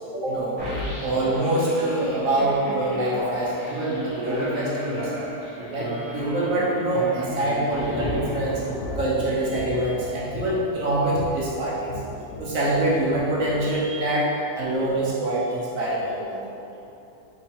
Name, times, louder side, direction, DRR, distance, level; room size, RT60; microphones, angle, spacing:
voice 1, 0.1-5.3 5.7-8.6 9.0-12.0 12.4-16.7, right 1 dB, 65° right, -5 dB, 0.9 m, -25 dB
sound 1, 0.6-8.9, equal, 15° right, 1.1 m, -34 dB
Thunder / Rain, 6.6-13.8, left 1 dB, 70° left, 1.2 m, -36 dB
4.0 x 3.1 x 4.2 m, 2.6 s
omnidirectional pair, 1.9 m